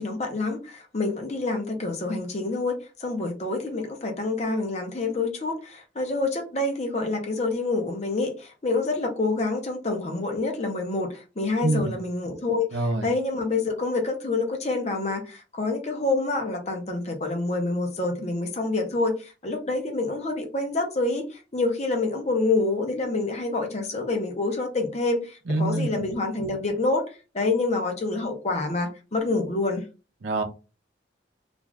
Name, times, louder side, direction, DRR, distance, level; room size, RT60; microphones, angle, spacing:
voice 1, 0.0-29.8, left 3 dB, 35° left, 0.6 m, -27 dB
voice 2, 11.6-11.9 12.7-13.1 25.5-26.1 30.2-30.4, right 2 dB, 80° right, 0.6 m, -25 dB
2.5 x 2.3 x 3.2 m
head